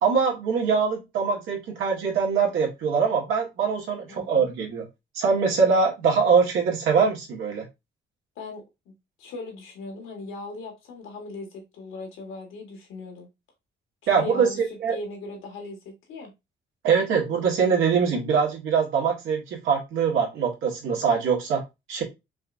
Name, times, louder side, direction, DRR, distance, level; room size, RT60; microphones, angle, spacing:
voice 1, 0.0-4.9 5.1-7.6 14.1-15.0 16.8-21.6 21.9-22.0, right 6 dB, 85° right, 1.4 m, -23 dB
voice 2, 4.1-4.5 8.4-8.9 9.2-13.3 14.1-14.6 14.9-16.3, left 3 dB, 85° left, 1.4 m, -38 dB
5.2 x 2.4 x 2.5 m
cardioid pair, 90°, 20 cm